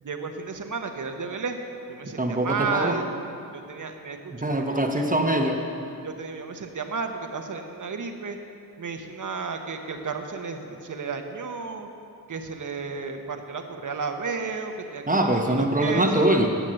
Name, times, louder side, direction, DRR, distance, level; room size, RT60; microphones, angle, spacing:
voice 1, 0.0-1.6 1.9-3.1 3.5-5.0 6.0-8.4 8.8-11.9 12.3-15.0 15.5-16.3, right 5 dB, 55° right, 5 dB, 1.1 m, -33 dB
voice 2, 2.0-3.0 4.4-5.6 15.1-16.5, right 1 dB, 20° right, 2 dB, 1.0 m, -23 dB
11.0 x 7.5 x 7.6 m, 2.6 s
cardioid pair, 70°, 38 cm